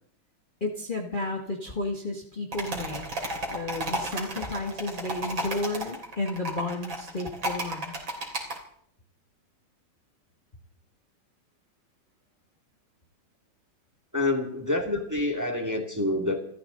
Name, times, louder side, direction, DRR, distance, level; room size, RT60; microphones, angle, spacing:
voice 1, 0.6-3.0 3.5-8.0, left 2 dB, 25° left, 0 dB, 1.6 m, -32 dB
sound 1, 2.5-8.6, right 1 dB, 65° right, 3.9 m, -33 dB
voice 2, 14.1-16.4, left 2 dB, 10° right, 3 dB, 1.9 m, -27 dB
28.5 x 13.0 x 3.9 m, 0.63 s
omnidirectional pair, 2.3 m